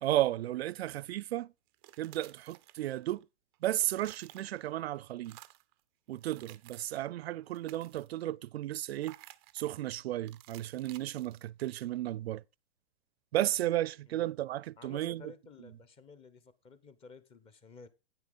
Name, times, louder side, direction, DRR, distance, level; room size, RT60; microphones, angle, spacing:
voice 1, 0.0-1.5 2.0-3.2 3.6-5.4 6.1-9.1 9.5-12.4 13.3-15.2, right 14 dB, 75° right, 0.5 m, -33 dB
sound 1, 1.7-3.2 3.5-4.8 5.2-5.7 6.1-7.1 7.4-8.2 9.0-9.8 10.3-12.0, right 18 dB, 25° right, 0.4 m, -56 dB
voice 2, 14.8-17.9, left 4 dB, 20° left, 1.0 m, -53 dB
9.4 x 9.4 x 4.0 m
hypercardioid pair, 150°, 31 cm